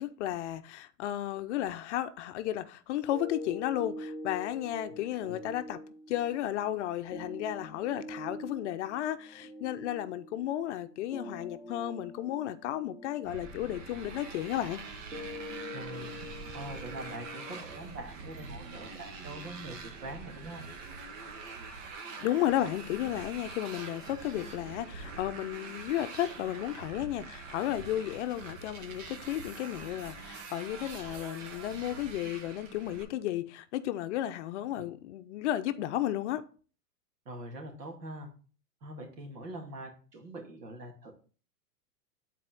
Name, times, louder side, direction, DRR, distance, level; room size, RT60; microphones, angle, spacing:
voice 1, 0.0-5.8 6.1-14.8 22.2-36.4, left 12 dB, 50° left, 0.6 m, -33 dB
sound 1, 3.1-19.1, left 1 dB, 5° right, 0.7 m, -45 dB
Motorcycle, 13.3-33.0, right 4 dB, 50° right, 1.4 m, -44 dB
voice 2, 15.7-16.1 16.5-20.7 37.3-38.3 38.8-41.1, right 1 dB, 85° right, 2.2 m, -43 dB
8.7 x 4.2 x 3.5 m
hypercardioid pair, 130°, 47 cm